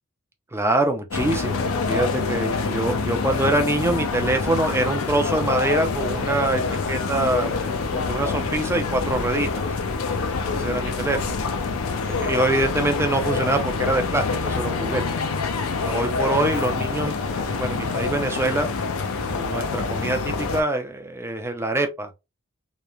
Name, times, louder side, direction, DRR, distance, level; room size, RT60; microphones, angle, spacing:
voice 1, 0.5-6.6 6.9-9.5 10.5-11.2 12.1-15.0 15.8-18.7 19.2-22.1, right 2 dB, 10° right, 0.4 m, -24 dB
sound 1, 1.1-20.6, left 4 dB, 70° left, 0.5 m, -26 dB
3.0 x 2.1 x 2.3 m
head